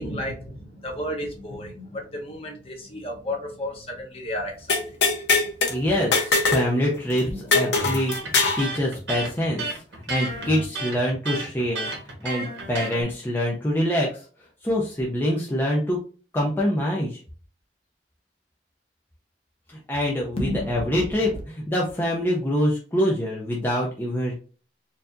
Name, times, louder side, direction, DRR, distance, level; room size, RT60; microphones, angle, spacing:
voice 1, 0.0-4.8 7.7-7.9 20.4-21.4, left 1 dB, 35° left, -1 dB, 1.1 m, -32 dB
sound 1, 4.7-5.7 6.1-6.7 6.9-7.0 7.5-8.6, left 3 dB, 75° left, 1.0 m, -21 dB
voice 2, 5.7-9.8 10.1-14.3 14.6-16.0 16.3-17.2 19.7-24.3, equal, 10° left, -3 dB, 0.6 m, -25 dB
Electric guitar, 7.8-13.0, right 2 dB, 80° right, 1.3 m, -32 dB
4.4 x 2.7 x 2.6 m, 0.39 s
head